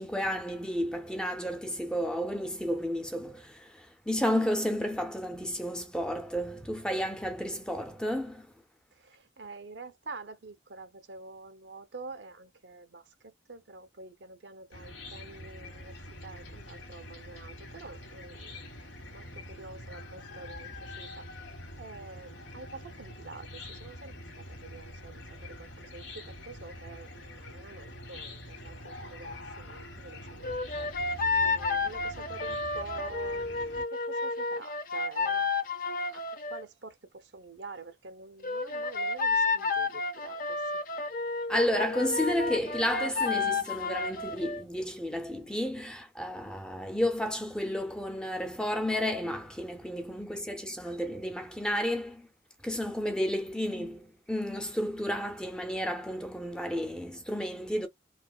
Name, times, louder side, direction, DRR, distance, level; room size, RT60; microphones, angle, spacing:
voice 1, 0.0-8.5 41.5-52.3 52.6-57.9, equal, 5° left, 0.5 m, -32 dB
voice 2, 8.9-13.1 13.5-18.6 19.1-36.2 36.5-40.6, right 3 dB, 75° right, 0.7 m, -47 dB
Chicken rooster / Cricket, 14.7-33.8, left 1 dB, 85° left, 1.6 m, -45 dB
sound 1, 30.4-36.6 38.4-44.6, left 3 dB, 45° left, 0.6 m, -31 dB
4.1 x 2.3 x 2.3 m
head